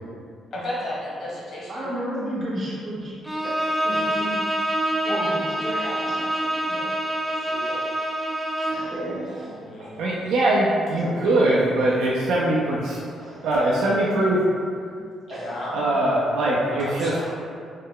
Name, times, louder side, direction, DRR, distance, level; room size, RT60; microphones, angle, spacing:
voice 1, 0.5-1.9 5.0-6.9 7.2-7.8 8.3-8.4 9.6-10.1 15.3-15.8 16.7-17.3, left 1 dB, 60° left, -5 dB, 0.9 m, -35 dB
voice 2, 1.7-3.2 3.4-4.6 5.1-6.2 6.5-6.7 8.7-9.6 11.0-11.6 13.2-13.5 15.3-15.8 17.0-17.1, right 1 dB, 55° right, -7 dB, 0.7 m, -33 dB
Bowed string instrument, 3.2-8.9, right 1 dB, ahead, 0.4 m, -26 dB
voice 3, 9.8-13.0 13.4-14.4 15.7-17.1, right 1 dB, 85° right, -5 dB, 0.4 m, -22 dB
3.1 x 2.1 x 3.6 m, 2.2 s
cardioid pair, 90°, 0 cm